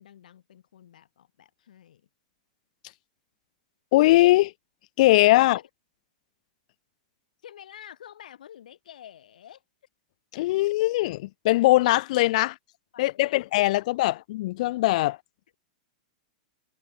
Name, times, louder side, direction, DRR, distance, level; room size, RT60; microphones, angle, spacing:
voice 1, 0.0-2.0 5.4-5.7 7.4-9.6 12.9-13.4 14.1-14.2, left 10 dB, 80° left, 4.0 m, -48 dB
voice 2, 3.9-4.5 5.0-5.6 10.3-12.5 13.0-15.2, left 18 dB, 60° left, 0.5 m, -21 dB
hypercardioid pair, 130°, 4 cm